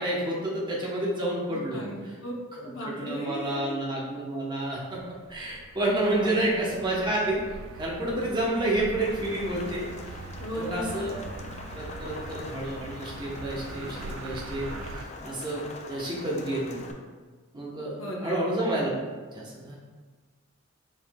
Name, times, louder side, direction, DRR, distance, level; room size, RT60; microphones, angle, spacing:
voice 1, 0.0-1.8 2.5-5.0 5.3-7.4 7.8-9.9 10.5-11.2 11.7-16.9 17.5-18.9 19.3-19.8, right 1 dB, 20° right, -4 dB, 1.0 m, -29 dB
voice 2, 1.5-2.3 2.6-3.7 6.2-6.5 10.4-11.1 18.0-18.4, left 1 dB, 70° left, -1 dB, 0.8 m, -36 dB
sound 1, 5.0-15.1, right 3 dB, 80° right, 0.3 m, -42 dB
Rain, 9.0-16.9, left 3 dB, 35° left, 0.4 m, -43 dB
5.1 x 4.4 x 2.3 m, 1.4 s
head